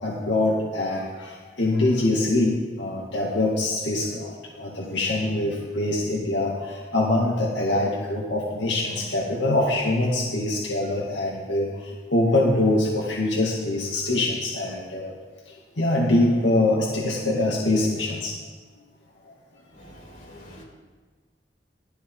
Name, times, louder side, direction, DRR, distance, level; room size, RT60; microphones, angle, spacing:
voice 1, 0.0-4.3 4.6-15.1 15.8-18.3, left 2 dB, 90° left, -3 dB, 2.1 m, -24 dB
voice 2, 19.7-20.6, equal, 45° left, -4 dB, 4.9 m, -46 dB
16.0 x 13.5 x 4.0 m, 1.4 s
head